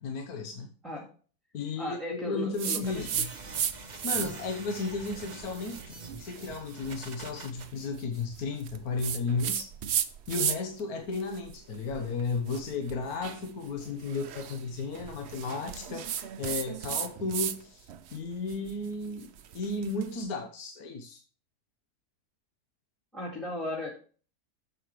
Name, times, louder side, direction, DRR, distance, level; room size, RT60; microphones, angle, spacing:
voice 1, 0.0-0.7 1.5-3.3 4.0-9.7 10.3-16.1 16.4-21.2, left 3 dB, 70° left, 4 dB, 1.5 m, -34 dB
voice 2, 1.8-3.1 3.5-3.6 23.1-23.9, left 2 dB, ahead, -1 dB, 1.8 m, -36 dB
sound 1, 2.6-3.7 4.0-4.5 5.0-10.8 11.1-17.6 17.9-20.1, right 9 dB, 60° right, 0.7 m, -35 dB
sound 2, 2.8-7.7, right 3 dB, 35° right, 0.9 m, -45 dB
9.6 x 7.5 x 3.2 m, 0.40 s
omnidirectional pair, 1.7 m